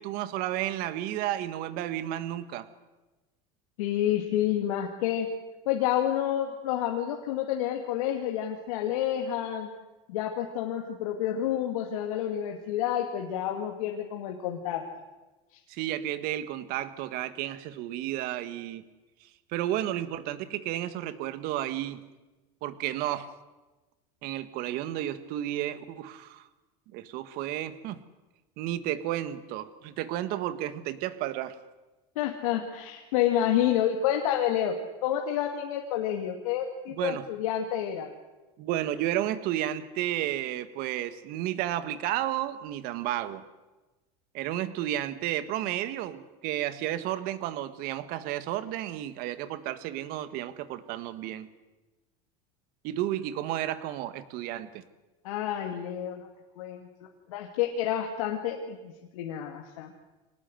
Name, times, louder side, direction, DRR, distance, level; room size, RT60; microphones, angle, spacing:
voice 1, 0.0-2.7 15.7-18.9 19.2-22.0 22.6-23.3 24.2-26.5 26.9-28.0 28.6-31.6 36.9-37.3 38.6-43.4 44.3-51.5 52.8-54.8, right 13 dB, 60° right, 13 dB, 1.7 m, -32 dB
voice 2, 3.8-5.3 5.7-9.7 10.1-14.8 32.2-38.1 55.2-56.3 56.6-56.8 57.3-59.9, left 10 dB, 80° left, 2 dB, 2.4 m, -29 dB
24.5 x 19.0 x 7.9 m, 1.1 s
supercardioid pair, 125°, 17 cm